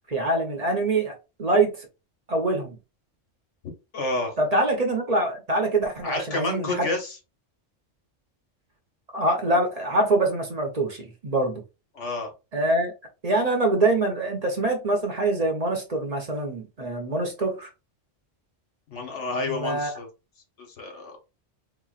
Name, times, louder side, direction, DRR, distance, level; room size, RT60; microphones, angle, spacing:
voice 1, 0.1-1.1 1.4-1.9 2.3-2.8 4.4-6.9 9.1-11.6 12.5-12.9 13.2-17.7 19.1-19.2 19.5-19.9, right 2 dB, 40° right, 0.7 m, -24 dB
voice 2, 3.9-4.4 6.0-7.2 11.9-12.3 18.9-20.1 20.6-21.2, left 2 dB, 70° left, 1.3 m, -30 dB
3.7 x 2.9 x 2.4 m
omnidirectional pair, 1.3 m